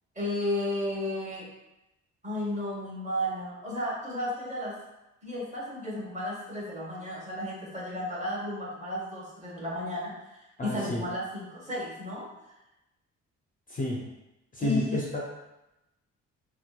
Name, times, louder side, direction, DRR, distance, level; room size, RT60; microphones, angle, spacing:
voice 1, 0.1-1.5 2.2-4.8 5.2-12.3 14.6-15.0, left 1 dB, 25° right, -4 dB, 0.9 m, -33 dB
voice 2, 10.6-11.0 13.7-14.0 14.5-15.3, left 1 dB, 30° left, -3 dB, 0.4 m, -31 dB
2.8 x 2.1 x 2.2 m, 0.95 s
cardioid pair, 90°, 30 cm